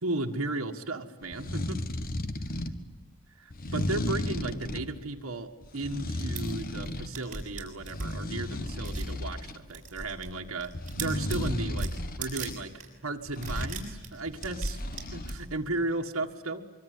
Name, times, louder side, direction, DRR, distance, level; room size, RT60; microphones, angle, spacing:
voice 1, 0.0-1.9 3.4-14.8 15.1-16.7, right 2 dB, 80° right, 2 dB, 1.7 m, -35 dB
sound 1, 1.2-2.8 3.5-4.9 5.6-7.2 7.5-9.6 10.7-12.6 13.3-13.8 14.3-15.3, left 1 dB, 45° left, 1.5 m, -34 dB
sound 2, 6.2-6.4 6.8-6.9 7.1-8.1 8.8-9.1 9.5-10.3 10.6-12.5 12.8-12.9 13.3-15.6, right 2 dB, 35° right, 6.9 m, -36 dB
24.5 x 24.5 x 9.6 m, 1.3 s
head